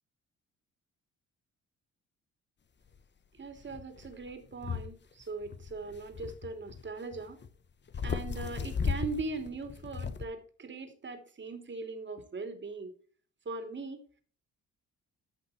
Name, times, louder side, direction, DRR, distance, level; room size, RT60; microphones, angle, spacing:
sound 1, 2.9-3.0 3.6-4.9 5.2-7.5 7.9-10.2, left 6 dB, 35° left, 1.1 m, -36 dB
voice 1, 3.3-7.4 8.0-12.9 13.4-14.0, right 3 dB, 40° right, 6 dB, 3.0 m, -40 dB
14.5 x 5.7 x 4.4 m, 0.43 s
cardioid pair, 90°, 30 cm